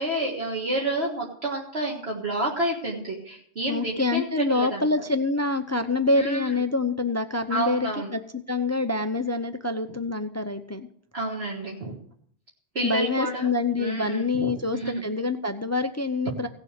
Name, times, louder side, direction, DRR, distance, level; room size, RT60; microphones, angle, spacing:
voice 1, 0.0-4.9 6.1-6.5 7.5-8.1 11.1-12.0 12.8-13.5 13.8-15.0, right 1 dB, 55° right, -3 dB, 2.0 m, -29 dB
voice 2, 3.7-10.9 12.8-16.5, left 3 dB, 20° left, 9 dB, 0.4 m, -26 dB
16.5 x 6.8 x 6.6 m, 0.63 s
omnidirectional pair, 1.3 m